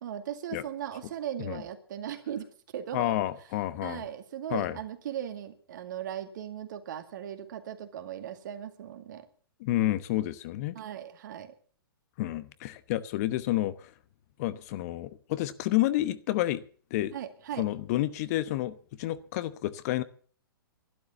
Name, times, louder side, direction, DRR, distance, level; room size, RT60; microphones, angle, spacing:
voice 1, 0.0-2.5 2.7-3.1 3.8-9.3 10.8-11.5 17.1-17.7, right 10 dB, 55° right, 2.2 m, -38 dB
voice 2, 2.9-4.0 4.5-4.8 9.6-10.7 12.2-13.9 14.4-16.6 16.9-17.1 17.6-20.0, left 15 dB, 45° left, 1.0 m, -30 dB
12.5 x 12.0 x 7.1 m
figure-of-eight pair, 115°, 12 cm